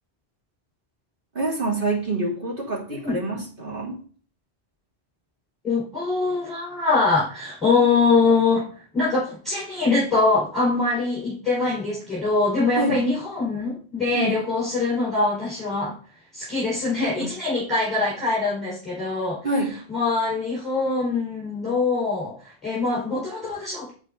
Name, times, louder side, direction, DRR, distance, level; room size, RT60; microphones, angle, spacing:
voice 1, 1.3-4.0 12.8-13.0 14.1-14.3 17.2-17.3 19.4-19.7, right 2 dB, 55° right, -5 dB, 3.7 m, -26 dB
voice 2, 5.6-15.9 16.3-19.4 19.9-23.9, left 3 dB, ahead, -8 dB, 4.7 m, -23 dB
8.7 x 8.2 x 4.0 m, 0.43 s
omnidirectional pair, 1.1 m